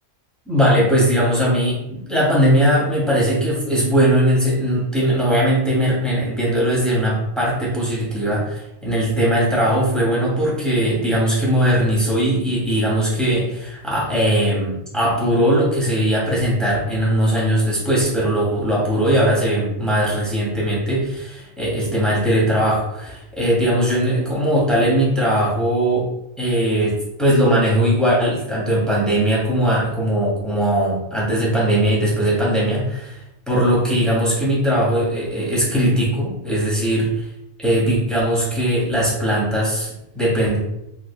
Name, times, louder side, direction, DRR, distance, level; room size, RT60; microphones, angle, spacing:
voice 1, 0.5-26.1 26.4-33.2 33.5-37.3 37.6-40.6, equal, ahead, -5 dB, 0.9 m, -19 dB
3.4 x 3.2 x 2.2 m, 0.85 s
omnidirectional pair, 1.2 m